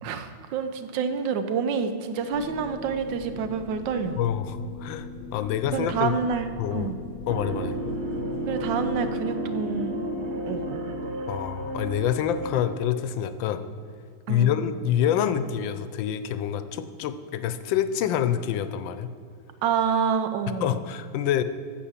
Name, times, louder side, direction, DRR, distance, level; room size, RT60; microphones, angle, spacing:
voice 1, 0.0-4.2 5.7-7.0 8.5-10.1 10.5-10.8 14.3-14.6 19.6-20.8, right 6 dB, 75° right, 9 dB, 1.4 m, -28 dB
sound 1, 2.3-9.2, left 3 dB, 55° left, 0.8 m, -40 dB
voice 2, 4.2-6.1 6.6-6.9 7.3-7.8 11.3-13.6 14.3-19.1 20.6-21.4, left 10 dB, 80° left, 12 dB, 1.3 m, -27 dB
sound 2, 7.3-13.0, right 1 dB, 50° right, 0.8 m, -32 dB
9.0 x 7.2 x 7.3 m, 2.3 s
omnidirectional pair, 2.1 m